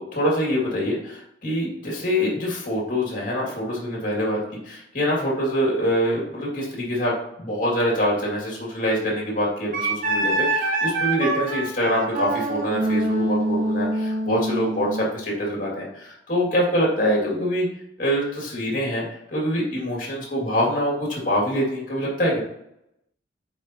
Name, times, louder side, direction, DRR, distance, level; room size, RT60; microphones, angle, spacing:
voice 1, 0.0-4.4 4.6-17.7 18.0-19.0 19.3-22.4, equal, 45° left, -3 dB, 2.2 m, -25 dB
Wind instrument woodwind instrument, 9.7-15.1, right 2 dB, 45° right, 0.9 m, -25 dB
7.1 x 4.8 x 2.8 m, 0.79 s
head